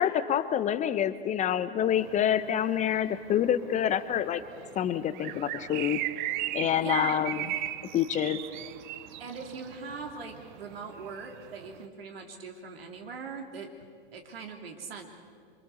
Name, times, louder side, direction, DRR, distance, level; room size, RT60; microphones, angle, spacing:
voice 1, 0.0-4.4 4.7-6.0 6.5-7.4 7.9-8.4, left 10 dB, 25° left, 12 dB, 0.9 m, -27 dB
sound 1, 2.0-11.9, right 13 dB, 50° right, 1.0 m, -38 dB
voice 2, 6.8-7.2 9.2-13.7 14.1-15.1, right 5 dB, 70° right, 3 dB, 3.1 m, -41 dB
27.0 x 24.0 x 7.0 m, 2.1 s
figure-of-eight pair, 100°, 31 cm